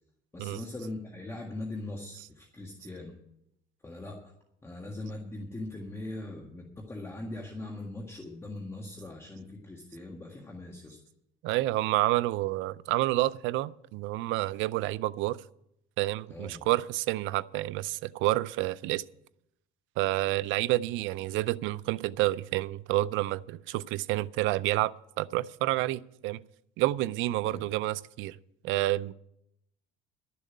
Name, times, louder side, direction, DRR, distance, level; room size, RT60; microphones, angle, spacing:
voice 1, 0.3-3.2 3.8-4.3 4.6-11.0 16.3-16.7 27.4-27.7, left 2 dB, 15° left, 1.7 m, -41 dB
voice 2, 11.4-15.4 16.0-19.0 20.0-26.4 26.8-28.4 28.6-29.1, right 17 dB, 80° right, 0.5 m, -29 dB
12.0 x 6.9 x 9.4 m
cardioid pair, 120°, 20 cm